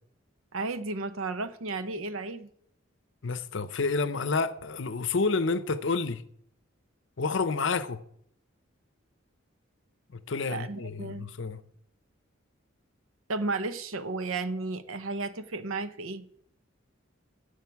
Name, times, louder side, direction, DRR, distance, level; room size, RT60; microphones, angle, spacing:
voice 1, 0.5-2.5 10.4-11.3 13.3-16.3, right 3 dB, 85° right, 0.8 m, -33 dB
voice 2, 3.2-6.2 7.2-8.0 10.1-11.6, left 4 dB, 65° left, 0.7 m, -29 dB
16.5 x 6.5 x 4.6 m
head